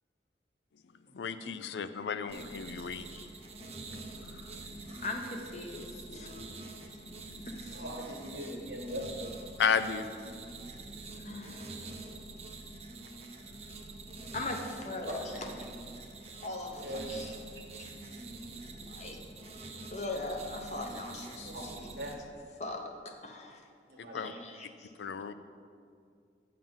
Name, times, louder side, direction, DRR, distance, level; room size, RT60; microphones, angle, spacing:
voice 1, 1.1-3.1 3.6-3.7 4.2-5.0 6.1-7.4 9.6-10.1 24.0-24.3 25.0-25.3, left 6 dB, 85° left, 11 dB, 0.4 m, -35 dB
sound 1, 2.3-22.1, right 2 dB, 35° right, 0.6 m, -46 dB
voice 2, 5.0-6.3 7.5-7.8 11.2-11.8 14.3-15.3 16.4-17.2 18.9-19.2 19.9-21.5 22.6-23.6 24.2-24.9, left 2 dB, 40° left, 2 dB, 0.7 m, -40 dB
voice 3, 7.7-9.3 11.3-11.6 12.0-12.2 15.0-15.5 16.7-17.2 17.5-17.6 18.8-18.9 21.4-22.2 23.9-24.4, equal, 70° right, 0 dB, 1.4 m, -41 dB
8.9 x 3.8 x 7.0 m, 2.3 s
head